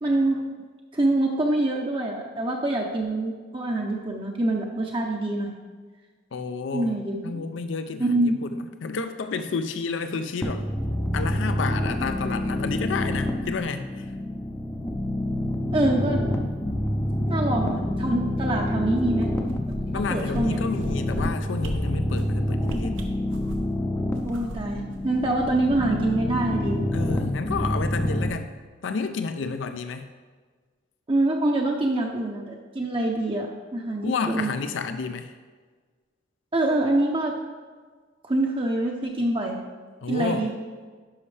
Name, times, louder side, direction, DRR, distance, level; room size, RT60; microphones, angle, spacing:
voice 1, 0.0-0.4 0.9-5.5 6.7-7.4 8.0-8.3 15.7-16.3 17.3-19.3 19.9-20.6 24.2-26.8 31.1-34.5 36.5-37.4 38.2-39.6 40.1-40.5, right 2 dB, 25° right, 0 dB, 0.6 m, -25 dB
voice 2, 6.3-7.0 7.2-10.7 11.1-14.1 19.9-23.1 26.9-28.5 28.8-30.1 34.0-35.3 40.0-40.5, left 4 dB, 75° left, 9 dB, 0.5 m, -30 dB
sound 1, 10.4-28.3, left 1 dB, 15° left, 0.4 m, -27 dB
sound 2, 19.0-20.0 20.3-20.4 20.8-21.2 21.6-21.7 22.1-22.3 22.6-23.8 24.2-25.8 26.1-26.2, right 1 dB, 85° right, 0.9 m, -37 dB
11.0 x 5.5 x 3.3 m, 1.5 s
head